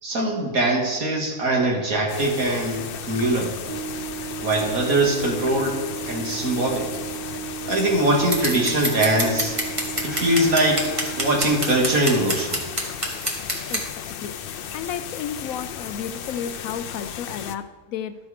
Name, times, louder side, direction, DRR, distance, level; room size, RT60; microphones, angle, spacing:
voice 1, 0.0-3.5 4.4-6.9 7.7-9.5 10.0-10.9 11.2-12.6, right 1 dB, 70° right, -1 dB, 2.3 m, -22 dB
sound 1, 2.1-17.6, left 8 dB, 90° left, 0.5 m, -35 dB
sound 2, 3.7-11.5, right 10 dB, 90° right, 1.8 m, -35 dB
Scissors, 8.3-13.8, right 1 dB, 20° right, 1.4 m, -27 dB
voice 2, 13.7-14.4 14.7-18.2, left 8 dB, 75° left, 11 dB, 0.9 m, -32 dB
12.5 x 6.2 x 4.9 m, 1.3 s
omnidirectional pair, 1.6 m